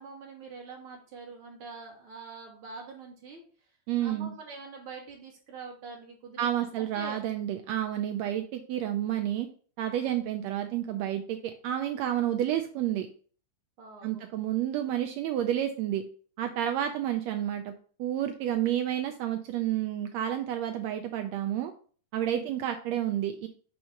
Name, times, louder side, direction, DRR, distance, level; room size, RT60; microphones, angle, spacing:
voice 1, 0.0-3.4 4.0-7.2 9.9-10.2 13.8-14.2 22.2-22.5, right 4 dB, 55° right, 0 dB, 1.8 m, -45 dB
voice 2, 3.9-4.3 6.4-9.5 9.8-11.4 11.6-13.1 14.0-16.0 16.4-17.7 18.0-21.7 22.1-23.5, right 11 dB, 85° right, 5 dB, 1.5 m, -30 dB
6.4 x 2.8 x 5.6 m, 0.44 s
omnidirectional pair, 3.5 m